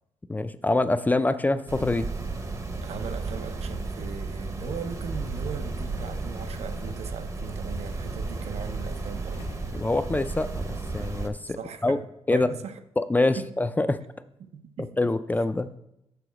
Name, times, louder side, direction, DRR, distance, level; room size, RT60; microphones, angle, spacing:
voice 1, 0.3-2.1 9.7-12.0 12.3-12.5 13.0-14.0 14.8-15.7, left 2 dB, 15° left, 0.3 m, -25 dB
sound 1, 1.7-11.3, right 3 dB, 30° right, 0.7 m, -33 dB
voice 2, 2.8-9.4 11.6-12.8 13.2-13.5 14.4-14.9, right 6 dB, 75° right, 0.6 m, -38 dB
sound 2, 8.6-10.7 11.0-11.1 12.7-12.8, left 4 dB, 85° left, 1.2 m, -49 dB
6.8 x 3.8 x 6.2 m
cardioid pair, 105°, 11 cm